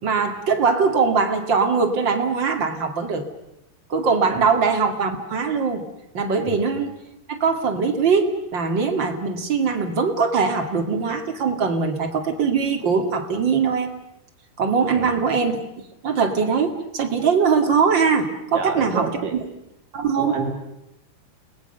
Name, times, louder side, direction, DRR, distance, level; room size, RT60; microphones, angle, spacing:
voice 1, 0.0-3.3 3.9-5.8 6.1-6.9 7.3-13.9 14.6-15.6 16.0-19.4 19.9-20.4, right 5 dB, 35° right, 5 dB, 2.3 m, -21 dB
voice 2, 18.5-19.3 20.2-20.5, right 5 dB, 60° right, 3 dB, 3.9 m, -28 dB
29.5 x 20.0 x 6.8 m, 0.85 s
omnidirectional pair, 4.6 m